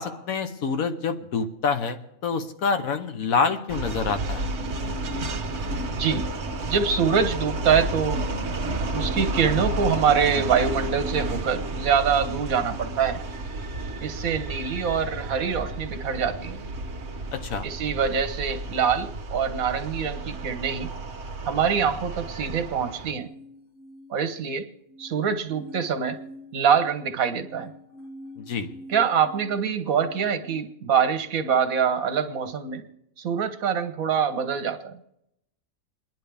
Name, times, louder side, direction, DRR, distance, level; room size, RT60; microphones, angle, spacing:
voice 1, 0.0-4.5 17.3-17.7 28.4-28.7, left 5 dB, 75° left, 8 dB, 1.3 m, -27 dB
sound 1, 3.7-23.1, right 2 dB, 50° right, 1.3 m, -31 dB
voice 2, 5.9-6.3 6.7-8.2 8.9-13.2 14.0-16.6 17.6-20.9 21.4-23.3 24.1-24.7 25.0-26.2 26.5-27.7 28.9-32.8 33.2-35.0, right 7 dB, 75° right, 9 dB, 1.4 m, -24 dB
sound 2, 20.9-30.6, left 1 dB, 55° left, 3.0 m, -47 dB
28.0 x 10.5 x 3.4 m, 0.83 s
omnidirectional pair, 1.5 m